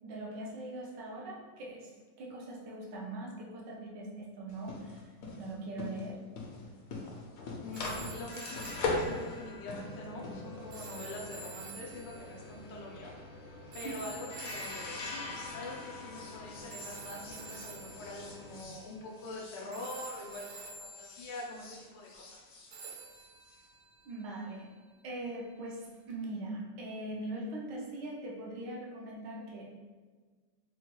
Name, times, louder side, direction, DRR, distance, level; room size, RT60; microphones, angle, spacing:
voice 1, 0.0-1.9 2.2-5.0 5.4-6.2 13.0-13.1 13.8-14.0 24.1-24.7 25.0-29.8, right 1 dB, 90° right, -2 dB, 1.3 m, -41 dB
sound 1, 4.5-20.7 21.0-23.6, left 2 dB, 75° left, 1.1 m, -42 dB
voice 2, 7.6-13.1 13.7-22.5, left 2 dB, 90° left, -1 dB, 1.3 m, -44 dB
sound 2, 7.7-15.9 16.7-19.4 19.7-21.8 22.7-24.9 26.1-26.2, right 3 dB, 70° right, 1.0 m, -50 dB
3.9 x 2.2 x 2.9 m, 1.4 s
omnidirectional pair, 1.9 m